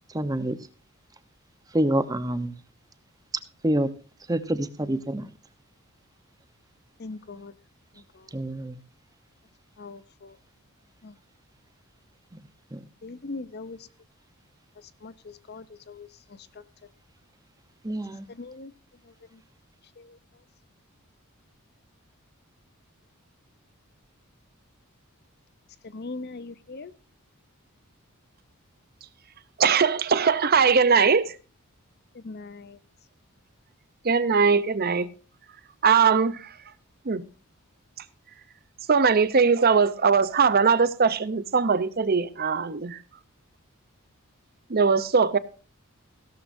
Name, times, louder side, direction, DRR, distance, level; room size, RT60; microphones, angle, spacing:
voice 1, 0.1-0.6 1.7-2.5 3.6-3.9 4.3-5.3 8.3-8.8 12.3-12.4 12.7-12.8 17.8-18.3, right 1 dB, 15° right, 0.9 m, -27 dB
voice 2, 7.0-7.5 8.0-8.3 9.8-10.4 11.0-11.2 13.0-13.9 14.8-16.6 18.3-18.7 19.0-19.4 20.0-20.2 25.8-26.9 32.1-32.8, left 3 dB, 45° left, 0.7 m, -41 dB
voice 3, 29.6-31.4 34.0-35.1 35.8-36.4 37.1-37.2 38.9-43.0 44.7-45.4, right 5 dB, 45° right, 0.7 m, -21 dB
16.0 x 12.5 x 2.7 m
head